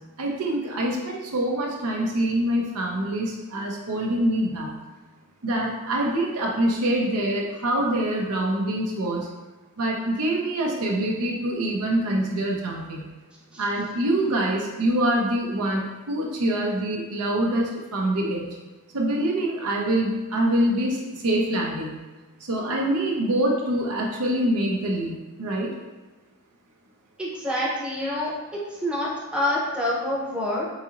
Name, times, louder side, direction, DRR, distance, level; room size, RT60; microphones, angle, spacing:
voice 1, 0.2-4.7 5.4-9.3 9.8-13.1 13.6-18.5 18.9-21.9 22.4-25.7, right 1 dB, 85° right, -1 dB, 0.7 m, -25 dB
voice 2, 27.2-30.6, left 1 dB, 5° right, -5 dB, 0.6 m, -27 dB
4.0 x 2.9 x 2.4 m, 1.2 s
head